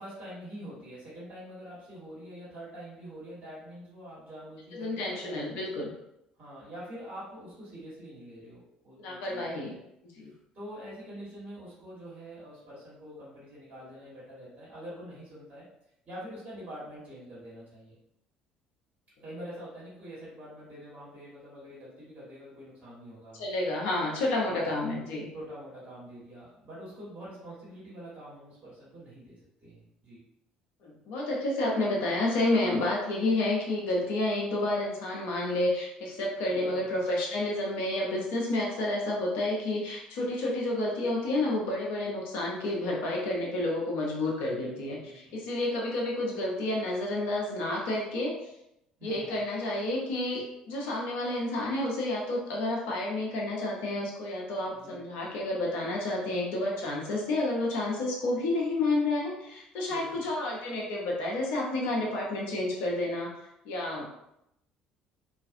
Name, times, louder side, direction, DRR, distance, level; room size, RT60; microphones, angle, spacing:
voice 1, 0.0-5.4 6.4-9.8 10.5-15.7 16.0-18.0 19.2-23.5 24.4-24.7 25.3-30.2 36.5-36.9 44.5-44.8 45.0-45.4 49.0-49.4 54.7-55.0 59.9-60.2 63.9-64.0, equal, 40° right, -8 dB, 1.3 m, -45 dB
voice 2, 4.7-5.9 9.0-9.7 10.1-10.3 23.4-25.3 30.8-48.3 49.0-63.3 63.6-64.0, left 2 dB, 60° left, -2 dB, 0.6 m, -30 dB
2.5 x 2.3 x 2.5 m, 0.82 s
figure-of-eight pair, 55°, 4 cm